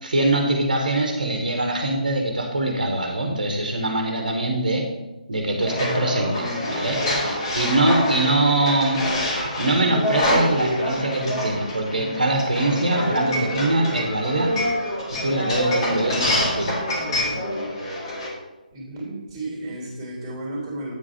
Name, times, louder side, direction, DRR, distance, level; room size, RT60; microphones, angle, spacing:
voice 1, 0.0-4.9 5.3-14.6 15.2-16.8, right 2 dB, 65° right, 2 dB, 1.3 m, -23 dB
sound 1, 5.6-18.3, left 1 dB, 35° left, 2.1 m, -26 dB
voice 2, 18.7-20.9, right 1 dB, 15° right, -2 dB, 2.8 m, -33 dB
9.0 x 5.0 x 5.0 m, 1.1 s
figure-of-eight pair, 145°, 5 cm